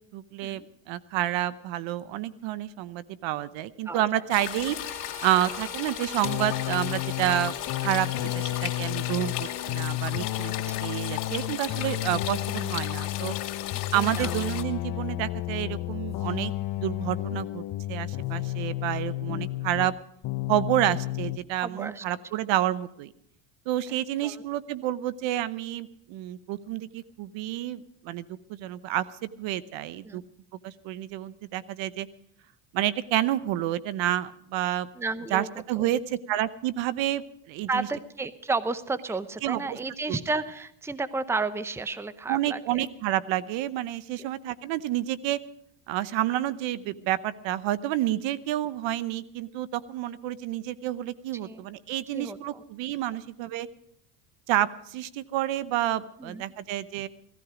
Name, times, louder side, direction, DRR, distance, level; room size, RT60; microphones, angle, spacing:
voice 1, 0.1-0.6 0.9-4.8 5.2-7.5 7.8-13.3 13.9-19.9 20.5-23.1 23.7-30.2 30.6-32.1 32.7-34.9 35.3-37.9 39.4-39.8 40.1-40.2 42.3-45.4 45.9-53.7 54.5-57.1, right 13 dB, 65° right, 17 dB, 0.9 m, -29 dB
sound 1, 4.3-14.6, left 14 dB, 75° left, 2.3 m, -36 dB
Bowed string instrument, 4.7-10.1, left 2 dB, 25° right, 4.8 m, -44 dB
sound 2, 6.2-20.0 20.2-21.4, left 15 dB, 45° left, 0.7 m, -32 dB
voice 2, 13.7-14.3 17.3-17.4 21.6-22.0 24.2-24.4 30.0-30.2 35.0-35.5 35.8-35.9 37.7-42.9 44.2-44.3 51.4-51.7 52.1-52.6 56.2-56.4, right 3 dB, 5° right, 14 dB, 0.7 m, -32 dB
17.0 x 14.0 x 5.0 m, 0.73 s
supercardioid pair, 100°, 48 cm